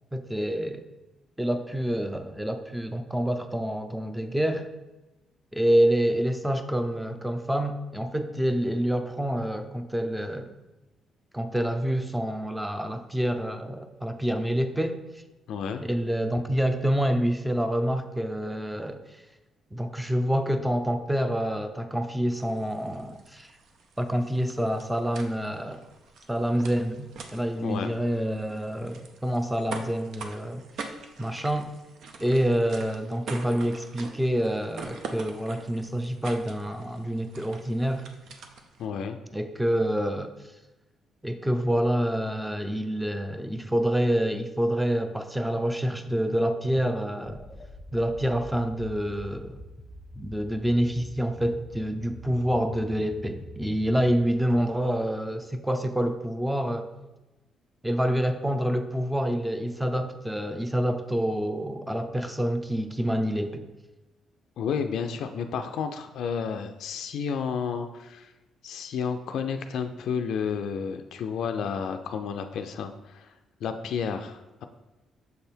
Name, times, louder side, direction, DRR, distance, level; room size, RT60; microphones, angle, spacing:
voice 1, 0.1-0.8 1.4-4.7 5.5-10.5 11.3-15.0 15.8-19.0 19.7-23.5 24.0-25.8 26.3-30.9 31.2-31.7 32.2-38.1 39.3-40.3 41.2-47.4 47.9-49.6 50.2-56.9 57.8-63.7, equal, 5° right, 8 dB, 0.5 m, -27 dB
voice 2, 15.5-15.8 27.6-27.9 38.8-39.2 64.6-68.3 68.6-73.3 73.6-74.6, left 6 dB, 75° left, 7 dB, 0.4 m, -31 dB
sound 1, 22.3-38.9, right 4 dB, 70° right, 0.6 m, -44 dB
sound 2, 46.1-55.4, left 1 dB, 15° left, 0.9 m, -45 dB
6.6 x 3.4 x 4.4 m, 1.1 s
cardioid pair, 90°, 0 cm